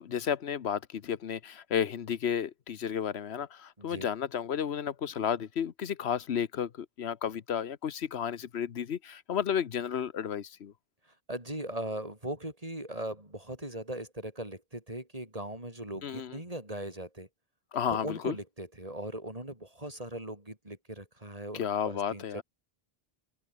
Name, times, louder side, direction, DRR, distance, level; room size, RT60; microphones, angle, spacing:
voice 1, 0.0-10.7 16.0-16.4 17.7-18.4 21.5-22.4, left 8 dB, 90° left, 1.2 m, -32 dB
voice 2, 3.8-4.1 11.3-17.3 17.9-22.2, right 1 dB, 35° right, 5.7 m, -39 dB
omnidirectional pair, 1.1 m